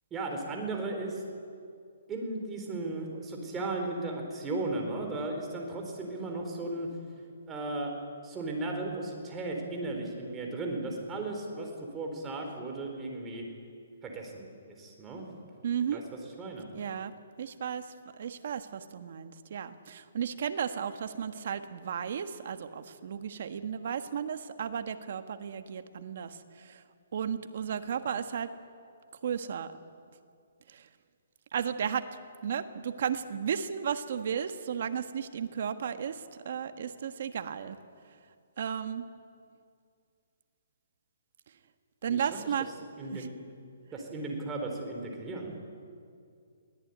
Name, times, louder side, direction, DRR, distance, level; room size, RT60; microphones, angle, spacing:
voice 1, 0.1-1.2 2.1-6.9 7.5-7.9 8.2-13.4 14.0-15.3 15.9-16.0 16.4-16.7 42.1-42.2 43.0-43.3 43.9-45.6, right 2 dB, 15° right, 1 dB, 4.1 m, -35 dB
voice 2, 15.6-16.0 16.7-17.1 17.4-17.9 18.2-26.8 27.1-28.5 29.2-29.7 30.7-30.9 31.5-32.1 32.4-37.8 38.6-39.1 42.0-42.7 43.1-43.3, right 8 dB, 55° right, 9 dB, 1.5 m, -34 dB
23.0 x 17.0 x 9.5 m, 2.3 s
hypercardioid pair, 155°, 0 cm